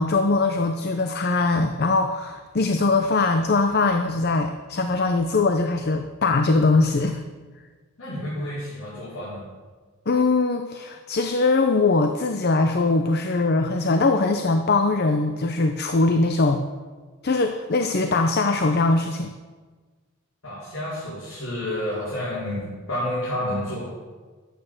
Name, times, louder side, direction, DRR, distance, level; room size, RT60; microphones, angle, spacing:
voice 1, 0.0-7.2 10.1-16.6 17.2-19.3, left 3 dB, 50° left, 7 dB, 0.7 m, -21 dB
voice 2, 8.0-9.4 20.4-23.8, left 1 dB, 75° left, -10 dB, 4.9 m, -30 dB
12.0 x 9.1 x 6.7 m, 1.4 s
head